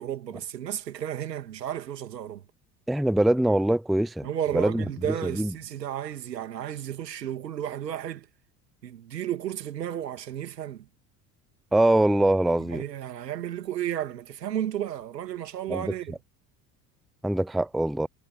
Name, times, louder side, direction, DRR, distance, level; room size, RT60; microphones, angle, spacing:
voice 1, 0.0-2.4 4.2-8.3 8.8-10.9 12.6-16.2, right 10 dB, 75° right, 2.9 m, -33 dB
voice 2, 2.9-4.3 4.5-4.8 5.3-5.5 11.7-12.8 15.7-15.9 17.2-18.1, right 1 dB, ahead, 0.6 m, -23 dB
figure-of-eight pair, 65°, 49 cm